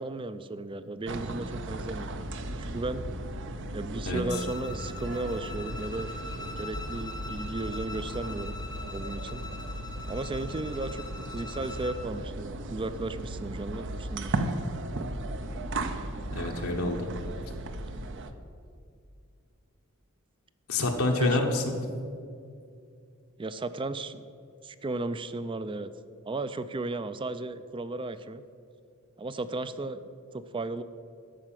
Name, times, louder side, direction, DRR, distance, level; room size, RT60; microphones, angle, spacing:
voice 1, 0.0-2.1 2.6-3.0 3.7-6.1 6.6-8.6 8.9-9.4 10.1-14.3 21.2-21.5 23.4-24.3 24.6-25.9 26.3-28.4 29.2-30.0 30.3-30.8, right 2 dB, 25° right, 13 dB, 0.4 m, -35 dB
sound 1, 1.1-18.3, right 1 dB, 60° right, 0.6 m, -36 dB
Bowed string instrument, 4.3-12.1, left 3 dB, 20° left, 0.6 m, -43 dB
voice 2, 16.3-17.1 20.7-21.8, left 2 dB, 80° left, 1 dB, 1.1 m, -27 dB
12.5 x 4.9 x 7.5 m, 2.4 s
head